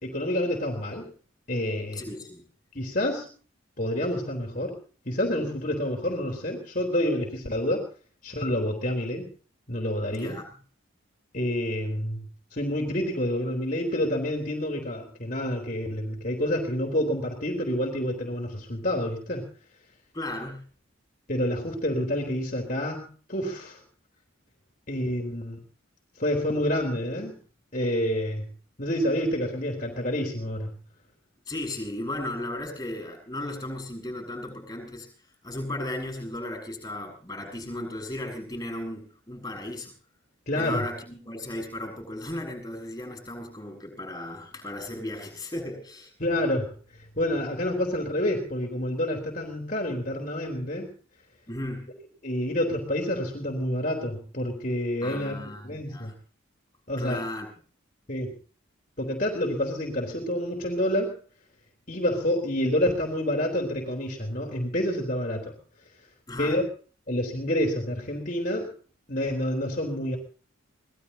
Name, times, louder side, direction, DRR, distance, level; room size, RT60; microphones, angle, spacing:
voice 1, 0.0-1.1 1.5-2.0 2.8-3.3 3.8-4.8 5.1-7.8 8.2-9.3 9.7-10.4 11.3-12.2 12.5-19.5 21.3-23.8 24.9-25.6 26.2-27.3 27.7-28.5 28.8-30.7 40.5-40.9 46.2-46.7 47.2-50.9 52.2-56.1 56.9-57.2 58.1-58.3 59.0-61.2 61.9-65.5 66.4-66.6 67.1-68.7 69.1-70.2, left 1 dB, 40° left, 0 dB, 3.6 m, -28 dB
voice 2, 2.0-2.5 10.1-10.4 20.1-20.6 31.5-35.1 35.4-39.9 40.5-46.1 51.5-51.9 55.0-56.1 57.0-57.5 66.3-66.6, left 1 dB, 15° left, 3 dB, 7.2 m, -35 dB
24.5 x 19.5 x 2.9 m, 0.41 s
head